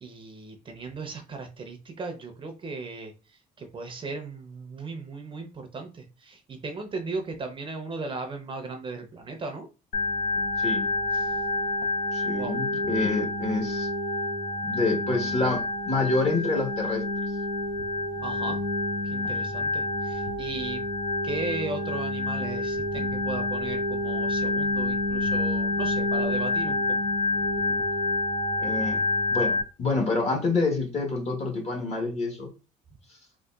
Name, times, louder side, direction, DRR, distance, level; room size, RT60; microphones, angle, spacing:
voice 1, 0.0-9.7 11.1-11.3 12.3-12.6 18.2-18.6 19.0-20.8 21.2-27.0, right 3 dB, 30° right, 5 dB, 0.6 m, -37 dB
Organ, 9.9-29.6, left 2 dB, 60° left, 0.7 m, -28 dB
voice 2, 10.6-10.9 12.1-13.9 14.6-17.0 28.6-29.0 29.3-32.5, left 3 dB, 40° left, 2 dB, 1.2 m, -27 dB
3.7 x 2.3 x 2.3 m, 0.32 s
cardioid pair, 110°, 17 cm